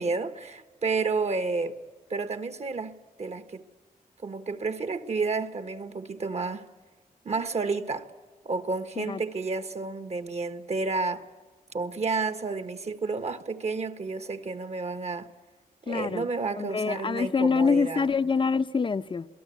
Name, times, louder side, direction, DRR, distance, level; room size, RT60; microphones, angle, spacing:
voice 1, 0.0-1.8 2.1-2.9 3.2-3.7 4.2-6.7 7.2-8.1 8.4-11.2 11.7-15.3 15.8-18.1, right 4 dB, 45° right, 1.4 m, -30 dB
voice 2, 15.9-16.3 16.6-19.3, left 5 dB, 35° left, 0.7 m, -25 dB
27.5 x 18.5 x 8.4 m
cardioid pair, 95°, 15 cm